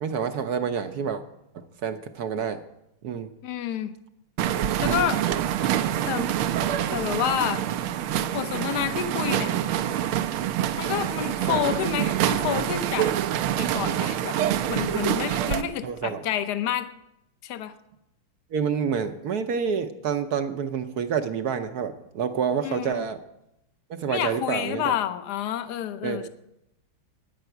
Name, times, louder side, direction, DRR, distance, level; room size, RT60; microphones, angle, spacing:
voice 1, 0.0-1.2 1.5-2.6 3.0-3.3 11.5-11.8 15.8-16.3 18.5-23.2 23.9-24.9 26.0-26.3, right 7 dB, 65° right, 9 dB, 1.0 m, -28 dB
voice 2, 3.4-3.9 4.8-5.2 6.1-6.3 6.9-7.6 8.3-9.6 10.8-13.1 13.6-14.4 14.7-16.9 17.4-17.7 22.6-23.0 24.1-26.3, left 10 dB, 60° left, 10 dB, 1.2 m, -29 dB
sound 1, 4.4-15.6, right 11 dB, 85° right, 1.6 m, -26 dB
10.5 x 10.0 x 7.9 m, 0.85 s
omnidirectional pair, 2.3 m